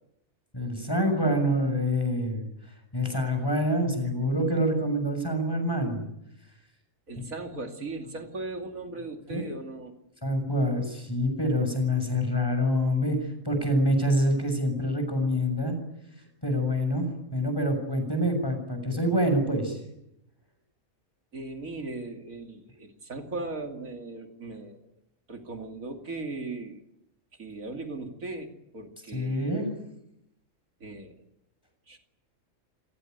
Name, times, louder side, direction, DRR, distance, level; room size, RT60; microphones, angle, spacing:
voice 1, 0.5-2.4 2.9-6.0 7.2-7.3 9.3-9.5 10.2-15.8 16.4-19.8 29.1-29.7, equal, 15° left, 6 dB, 7.0 m, -26 dB
voice 2, 7.1-10.0 21.3-24.9 25.3-26.8 27.4-29.5 30.8-31.2 31.9-32.0, right 3 dB, 75° right, 4 dB, 3.0 m, -38 dB
29.0 x 17.5 x 9.4 m, 0.84 s
omnidirectional pair, 1.4 m